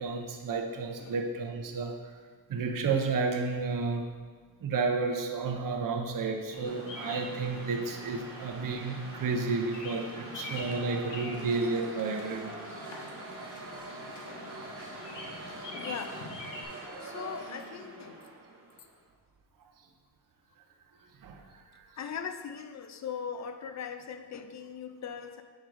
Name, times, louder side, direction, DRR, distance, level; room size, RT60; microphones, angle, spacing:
voice 1, 0.0-2.1 2.5-4.0 4.6-12.5 14.8-14.9 21.2-21.9, right 4 dB, 50° right, 3 dB, 0.8 m, -32 dB
Bird vocalization bird call bird song, 6.5-16.6, left 2 dB, 85° left, 1.1 m, -45 dB
sound 1, 6.6-18.9, right 2 dB, 30° right, 1.1 m, -44 dB
voice 2, 14.3-15.0 15.7-16.4 17.0-18.2 22.0-25.4, left 7 dB, 40° left, 8 dB, 0.5 m, -40 dB
7.5 x 3.8 x 4.8 m, 1.6 s
cardioid pair, 120°, 42 cm